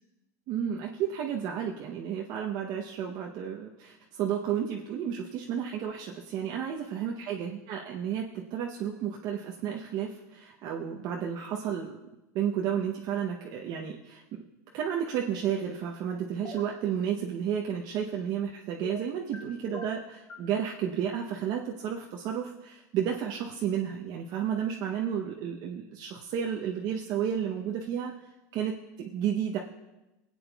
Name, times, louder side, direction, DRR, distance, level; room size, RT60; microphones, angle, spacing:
voice 1, 0.5-12.0 12.3-14.4 14.7-28.1 28.5-29.6, right 8 dB, 45° right, 0 dB, 0.8 m, -32 dB
sound 1, 16.4-16.8 18.8-19.4 19.7-20.5, left 1 dB, 25° left, 1.2 m, -42 dB
24.5 x 8.6 x 2.3 m, 1.0 s
supercardioid pair, 130°, 9 cm